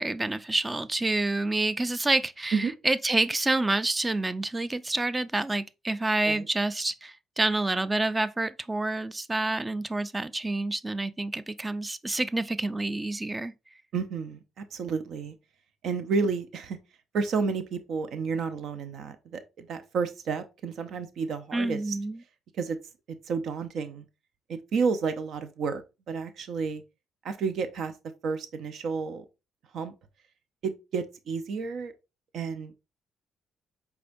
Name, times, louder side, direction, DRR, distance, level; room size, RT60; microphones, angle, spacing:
voice 1, 0.0-13.5 21.5-22.2, right 2 dB, 20° right, 0.4 m, -28 dB
voice 2, 13.9-15.4 15.8-16.8 17.1-22.0 22.6-22.8 23.3-24.0 24.5-26.8 27.2-27.9 28.2-29.2 29.7-29.9 30.6-31.9 32.3-32.7, right 5 dB, 70° right, 0.6 m, -31 dB
4.9 x 3.4 x 2.6 m
supercardioid pair, 70°, 0 cm